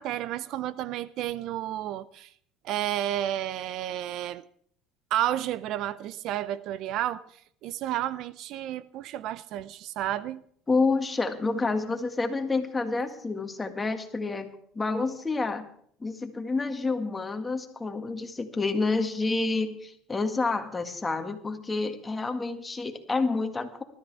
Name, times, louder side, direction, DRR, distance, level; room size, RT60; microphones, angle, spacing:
voice 1, 0.0-2.3 2.6-4.4 5.1-7.3 7.6-10.4, right 12 dB, 65° right, 0.5 m, -31 dB
voice 2, 10.7-15.7 16.0-23.8, left 3 dB, 20° left, 1.8 m, -29 dB
20.0 x 13.0 x 3.5 m
supercardioid pair, 105°, 0 cm